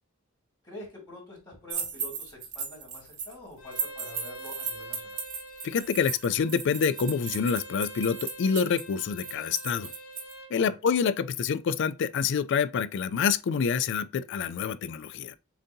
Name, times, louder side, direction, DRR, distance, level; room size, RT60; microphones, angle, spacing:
voice 1, 0.6-5.2 10.5-10.8, left 1 dB, 20° left, 2.4 m, -46 dB
sound 1, 1.7-3.3 3.7-10.3, right 6 dB, 60° right, 1.2 m, -36 dB
Bowed string instrument, 3.6-10.5, right 1 dB, 80° left, 1.3 m, -45 dB
voice 2, 5.6-9.9 10.5-15.4, left 6 dB, 60° left, 0.3 m, -27 dB
7.1 x 2.8 x 2.7 m
head